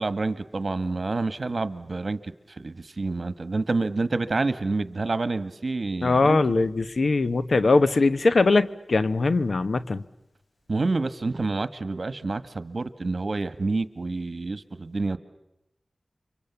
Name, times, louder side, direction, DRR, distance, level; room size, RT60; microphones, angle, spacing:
voice 1, 0.0-6.6 10.7-15.2, right 3 dB, 60° right, 13 dB, 1.5 m, -28 dB
voice 2, 6.0-10.0, left 3 dB, 75° left, 13 dB, 1.0 m, -21 dB
30.0 x 25.0 x 7.0 m, 0.91 s
wide cardioid pair, 50°, 0 cm